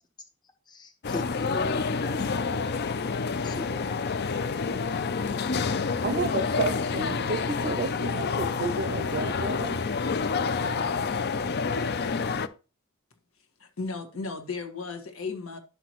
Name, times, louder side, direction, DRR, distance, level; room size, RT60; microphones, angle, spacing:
voice 1, 0.7-2.3 3.4-4.0, left 2 dB, 20° left, 1.0 m, -39 dB
sound 1, 1.0-12.5, left 4 dB, 50° left, 0.5 m, -28 dB
voice 2, 6.0-9.8, right 3 dB, 45° right, 0.5 m, -31 dB
voice 3, 13.6-15.6, left 4 dB, 70° left, 1.6 m, -35 dB
11.0 x 6.0 x 3.1 m
head